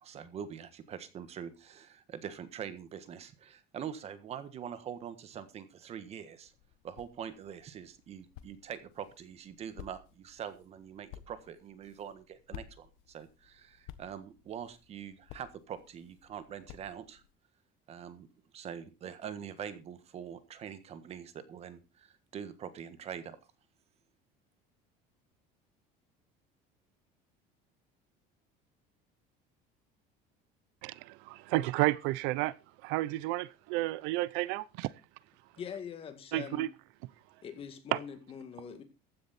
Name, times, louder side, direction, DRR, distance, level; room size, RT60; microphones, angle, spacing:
voice 1, 0.0-6.5 6.8-17.2 17.9-18.3 18.5-23.4, right 8 dB, 35° right, 1.5 m, -44 dB
sound 1, 6.4-17.3, left 12 dB, 85° left, 1.4 m, -54 dB
voice 2, 30.8-32.6 32.8-34.9 36.3-36.7 37.9-38.0, right 18 dB, 75° right, 0.6 m, -31 dB
voice 3, 35.6-36.7 37.4-38.8, left 7 dB, 30° left, 2.2 m, -43 dB
15.0 x 10.0 x 4.3 m
cardioid pair, 160°, 19 cm